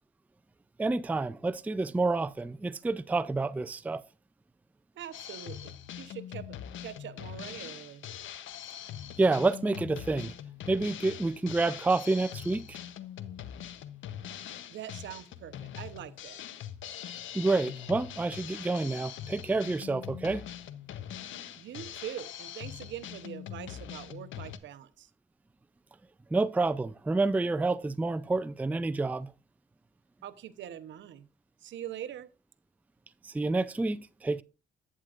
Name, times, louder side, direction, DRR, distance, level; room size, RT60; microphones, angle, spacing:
voice 1, 0.8-4.0 9.2-10.3 10.7-12.8 17.3-20.4 26.3-29.3 33.2-34.4, right 3 dB, 10° right, 0.4 m, -28 dB
voice 2, 4.9-8.1 14.7-16.4 21.6-25.1 30.2-31.3 31.6-32.3, right 11 dB, 70° right, 0.8 m, -43 dB
Drum kit, 5.1-24.6, left 10 dB, 75° left, 0.8 m, -43 dB
11.0 x 9.0 x 2.5 m
cardioid pair, 90°, 20 cm